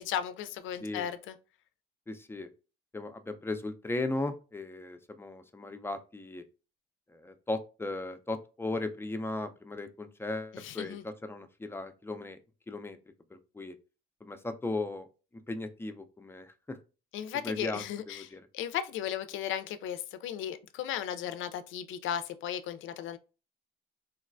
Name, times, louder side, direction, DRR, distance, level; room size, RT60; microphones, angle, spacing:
voice 1, 0.0-1.4 10.5-11.0 17.1-23.2, left 9 dB, 80° left, 0.4 m, -36 dB
voice 2, 2.1-2.5 2.9-6.4 7.1-12.4 12.7-13.0 13.3-13.8 14.2-15.1 15.3-16.8 17.4-18.5, left 2 dB, 10° left, 0.4 m, -37 dB
3.9 x 2.1 x 2.5 m
cardioid pair, 90°, 20 cm